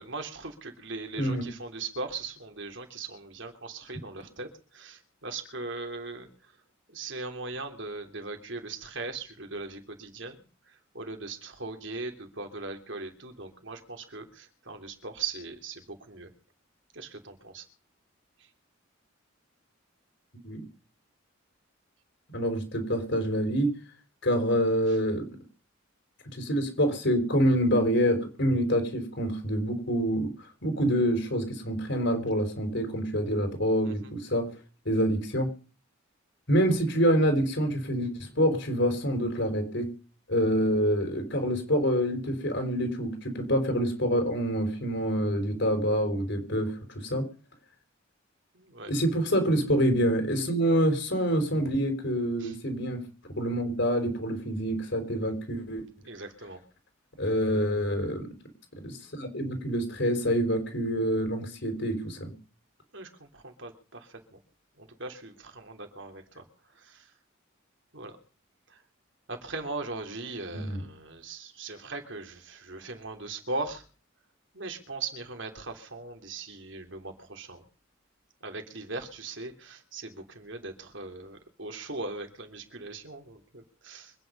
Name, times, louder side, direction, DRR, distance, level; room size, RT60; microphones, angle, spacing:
voice 1, 0.0-6.5 6.9-16.3 16.9-17.6 18.4-18.5 33.8-34.1 48.5-48.9 52.4-52.5 56.0-56.6 62.9-64.4 64.8-66.4 66.7-67.1 67.9-68.2 68.7-68.8 69.3-73.8 74.5-77.6 78.4-84.1, right 3 dB, 60° right, 5 dB, 3.2 m, -39 dB
voice 2, 1.2-1.5 20.4-20.6 22.3-23.7 24.2-25.2 26.2-30.3 30.6-34.5 34.8-35.5 36.5-39.9 40.3-47.2 48.9-53.0 53.4-55.8 57.2-58.3 58.8-62.3 70.5-70.8, equal, 60° left, 6 dB, 4.9 m, -26 dB
25.0 x 9.8 x 5.5 m, 0.38 s
head